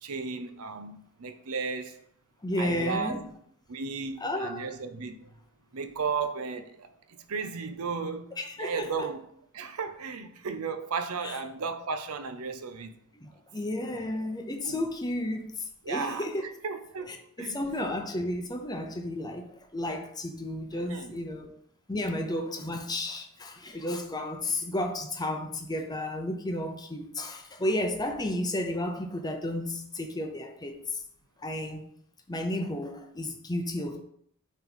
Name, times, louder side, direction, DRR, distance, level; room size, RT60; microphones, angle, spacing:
voice 1, 0.0-2.0 2.6-3.2 3.7-5.3 5.7-9.2 9.5-13.0 14.6-14.9 15.8-17.6 20.9-21.2 23.7-23.8, right 5 dB, 70° right, 0.6 m, -35 dB
voice 2, 2.4-3.3 4.2-4.7 8.4-9.1 11.2-11.4 13.1-16.5 17.1-21.5 21.9-31.0 31.4-31.9 32.3-34.0, left 1 dB, 20° left, 0.7 m, -32 dB
5.8 x 3.1 x 5.3 m
head